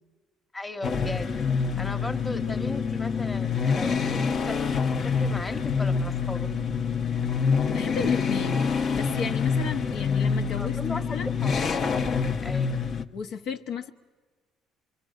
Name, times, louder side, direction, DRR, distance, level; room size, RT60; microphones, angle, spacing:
voice 1, 0.5-1.3 1.8-6.5 10.6-11.8 12.4-12.8, left 1 dB, 10° left, 5 dB, 1.3 m, -37 dB
sound 1, 0.8-13.0, left 5 dB, 40° left, 1.0 m, -26 dB
voice 2, 7.7-8.7 8.9-11.3 13.1-13.9, left 6 dB, 65° left, 5 dB, 1.1 m, -34 dB
25.0 x 24.0 x 6.6 m, 1.3 s
cardioid pair, 140°, 0 cm